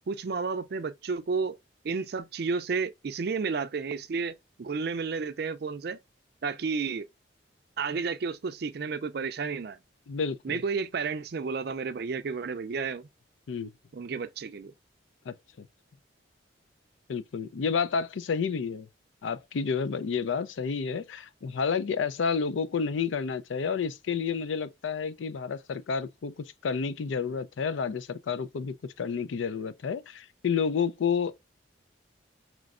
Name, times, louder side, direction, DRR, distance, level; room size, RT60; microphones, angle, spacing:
voice 1, 0.0-1.6 1.8-6.0 6.4-7.0 7.8-9.8 10.4-13.1 13.9-14.7, right 5 dB, 55° right, 0.4 m, -32 dB
voice 2, 10.1-10.6 13.5-13.7 15.3-15.7 17.1-18.9 19.2-31.3, left 6 dB, 85° left, 0.4 m, -30 dB
5.1 x 3.1 x 2.4 m
head